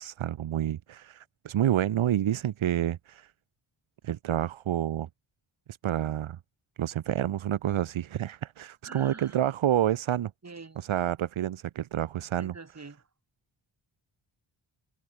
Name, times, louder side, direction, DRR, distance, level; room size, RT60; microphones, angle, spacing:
voice 1, 0.0-3.3 4.0-5.1 5.8-6.4 6.8-10.3 10.8-12.5, right 11 dB, 70° right, 0.9 m, -28 dB
voice 2, 8.8-9.4 10.4-10.9 12.4-13.1, right 4 dB, 30° right, 6.4 m, -45 dB
open air
wide cardioid pair, 125°, 49 cm